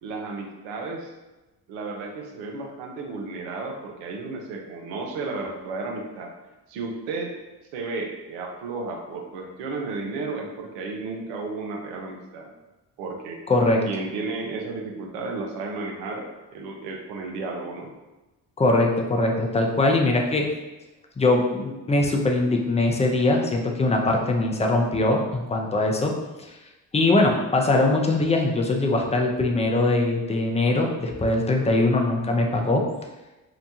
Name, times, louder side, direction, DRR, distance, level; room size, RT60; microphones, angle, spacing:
voice 1, 0.0-1.1 1.7-6.3 6.7-7.3 7.7-12.5 13.0-13.4 13.8-17.9, right 3 dB, 80° right, 2 dB, 0.6 m, -33 dB
voice 2, 13.5-13.8 18.6-20.5 21.2-26.1 26.4-26.6 26.9-32.8, left 2 dB, 15° left, 2 dB, 0.4 m, -22 dB
2.8 x 2.2 x 2.6 m, 1.1 s
hypercardioid pair, 45°, 43 cm